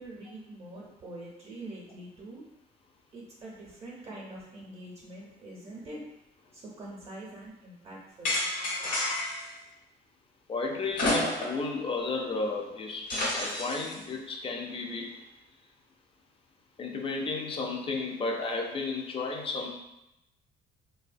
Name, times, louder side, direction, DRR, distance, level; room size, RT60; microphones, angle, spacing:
voice 1, 0.0-2.4 3.1-6.0 6.5-8.3, right 1 dB, 35° right, -3 dB, 0.6 m, -44 dB
sound 1, 8.2-9.5 10.9-11.7 12.0-12.1 13.1-13.9, left 1 dB, 55° left, 0.9 m, -30 dB
voice 2, 10.5-15.1 16.8-19.7, left 3 dB, 30° left, 2 dB, 0.4 m, -33 dB
2.6 x 2.1 x 2.5 m, 0.89 s
cardioid pair, 110°, 17 cm